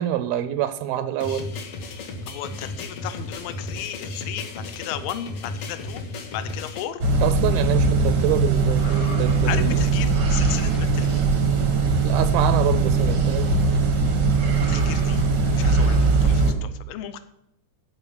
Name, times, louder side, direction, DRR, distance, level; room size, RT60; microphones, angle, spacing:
voice 1, 0.0-1.5 7.2-9.8 12.0-13.5, right 11 dB, 85° right, 2.4 m, -26 dB
sound 1, 1.2-6.8, left 3 dB, 60° left, 1.5 m, -34 dB
voice 2, 2.3-6.0 6.3-7.0 8.8-11.2 14.6-15.2 15.6-17.2, left 11 dB, 80° left, 2.4 m, -35 dB
sound 2, 7.0-16.5, right 3 dB, 65° right, 1.1 m, -20 dB
11.0 x 5.2 x 8.4 m
omnidirectional pair, 4.2 m